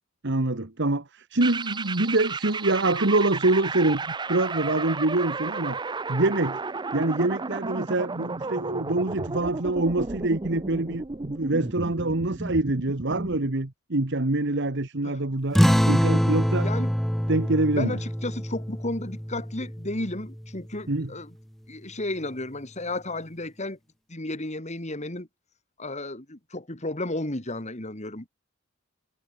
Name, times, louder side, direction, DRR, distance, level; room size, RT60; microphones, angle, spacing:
voice 1, 0.2-5.8 6.1-6.6 6.9-15.6 15.9-16.7 17.3-18.0 20.9-21.1, right 2 dB, 55° right, 1.5 m, -25 dB
sound 1, 1.4-13.5, right 3 dB, 20° right, 0.6 m, -33 dB
sound 2, 15.5-20.6, equal, ahead, 1.0 m, -25 dB
voice 2, 16.6-16.9 17.8-21.3 21.7-23.8 24.1-25.3 25.8-28.3, left 2 dB, 30° left, 2.7 m, -33 dB
head